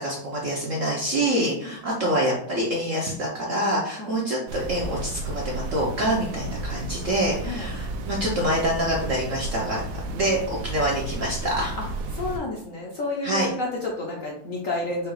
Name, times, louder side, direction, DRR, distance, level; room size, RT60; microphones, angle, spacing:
voice 1, 0.0-9.8 10.1-11.8 13.2-13.5, right 1 dB, 55° right, -3 dB, 0.9 m, -26 dB
voice 2, 1.6-2.0 4.0-4.2 7.4-7.7 11.8-11.9 12.1-15.1, left 2 dB, 55° left, -3 dB, 1.0 m, -31 dB
sound 1, 4.5-12.4, right 2 dB, 75° right, 1.3 m, -33 dB
4.8 x 2.4 x 4.7 m, 0.67 s
omnidirectional pair, 2.2 m